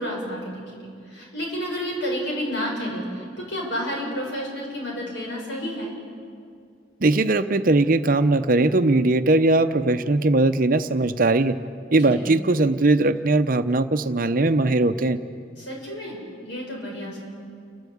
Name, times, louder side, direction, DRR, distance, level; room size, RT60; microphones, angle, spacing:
voice 1, 0.0-5.9 12.1-12.3 15.6-17.2, equal, 75° left, -2 dB, 6.9 m, -30 dB
voice 2, 7.0-11.6 11.9-15.2, right 2 dB, 50° right, 10 dB, 0.7 m, -20 dB
29.5 x 12.0 x 8.6 m, 2.2 s
head